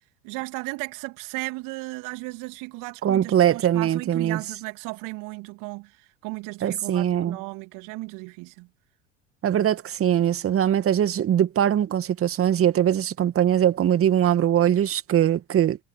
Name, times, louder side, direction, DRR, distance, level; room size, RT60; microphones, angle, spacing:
voice 1, 0.2-8.7, right 25 dB, 55° right, 2.9 m, -35 dB
voice 2, 3.0-4.4 6.6-7.4 9.4-15.8, right 10 dB, 35° right, 2.2 m, -21 dB
figure-of-eight pair, 65°, 38 cm